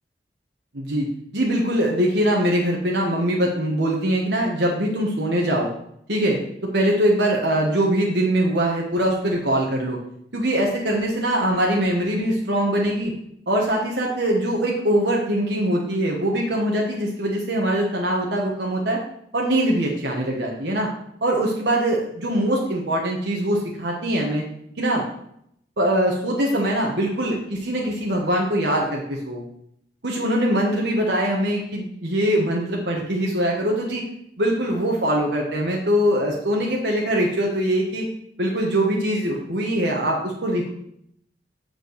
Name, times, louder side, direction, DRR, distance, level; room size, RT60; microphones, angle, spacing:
voice 1, 0.7-1.0 1.3-5.7 6.1-10.0 10.3-13.1 13.5-19.0 19.3-20.9 21.2-24.5 24.8-25.0 25.8-29.4 30.0-34.0 34.4-38.0 38.4-40.7, right 1 dB, 70° right, -1 dB, 1.4 m, -22 dB
7.6 x 5.2 x 6.5 m, 0.73 s
head